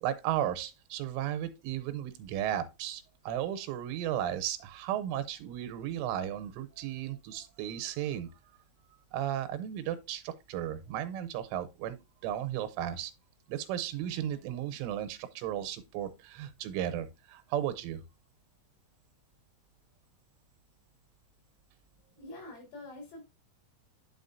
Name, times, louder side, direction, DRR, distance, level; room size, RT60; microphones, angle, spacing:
voice 1, 0.0-8.3 9.1-12.0 12.2-13.1 13.5-18.0, right 11 dB, 85° right, 3.3 m, -35 dB
voice 2, 22.2-23.3, left 2 dB, 60° left, 6.1 m, -46 dB
9.6 x 6.1 x 2.6 m
omnidirectional pair, 5.5 m